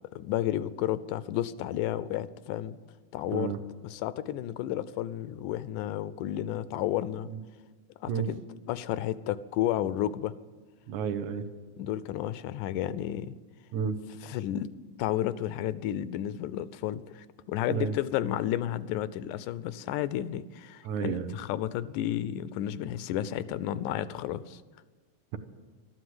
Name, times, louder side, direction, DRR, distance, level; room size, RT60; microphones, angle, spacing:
voice 1, 0.1-2.8 3.1-3.5 3.8-7.3 8.0-8.4 8.7-10.3 11.8-13.4 14.2-14.7 15.0-24.6, left 12 dB, 90° left, 15 dB, 2.1 m, -32 dB
voice 2, 10.9-11.5 13.7-14.0 17.7-17.9 20.8-21.4, right 7 dB, 75° right, 8 dB, 2.3 m, -31 dB
13.0 x 12.5 x 7.8 m, 1.3 s
omnidirectional pair, 3.5 m